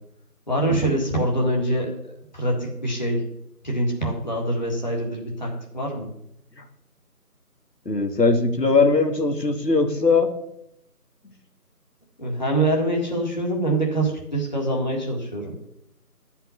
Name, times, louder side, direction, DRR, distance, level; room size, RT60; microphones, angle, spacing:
voice 1, 0.5-3.2 3.6-6.1 12.2-15.6, right 1 dB, 30° left, -1 dB, 1.9 m, -25 dB
voice 2, 7.9-10.3, left 3 dB, 90° left, 5 dB, 2.2 m, -20 dB
11.5 x 5.8 x 8.3 m, 0.80 s
figure-of-eight pair, 170°, 48 cm